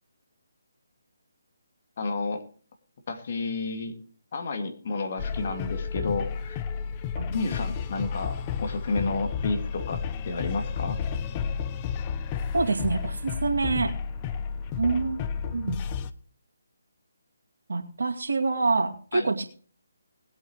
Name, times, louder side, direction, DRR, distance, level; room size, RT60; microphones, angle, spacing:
voice 1, 2.0-2.4 3.1-4.0 4.3-6.6 7.3-11.0 19.1-19.3, left 3 dB, 45° left, 5 dB, 2.3 m, -31 dB
sound 1, 5.2-16.1, left 6 dB, 25° left, 0.7 m, -32 dB
voice 2, 12.5-13.9 14.8-15.2 15.5-15.8 17.7-19.4, right 3 dB, 70° right, 3 dB, 2.4 m, -26 dB
20.5 x 8.5 x 3.2 m, 0.43 s
figure-of-eight pair, 150°, 0 cm